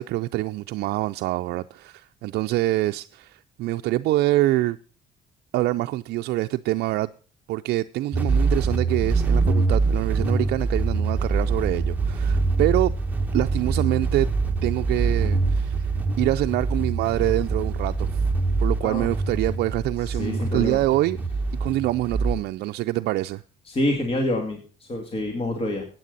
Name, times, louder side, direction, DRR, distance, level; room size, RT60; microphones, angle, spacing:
voice 1, 0.0-4.8 5.5-7.1 7.5-12.9 13.3-14.3 14.6-15.9 16.2-18.2 18.6-21.2 21.5-23.4, right 17 dB, 70° right, 0.4 m, -25 dB
sound 1, 8.1-22.3, right 3 dB, 10° right, 1.4 m, -24 dB
voice 2, 20.0-20.8 23.7-25.8, left 1 dB, 35° left, 2.4 m, -27 dB
15.0 x 9.1 x 3.9 m
cardioid pair, 110°, 17 cm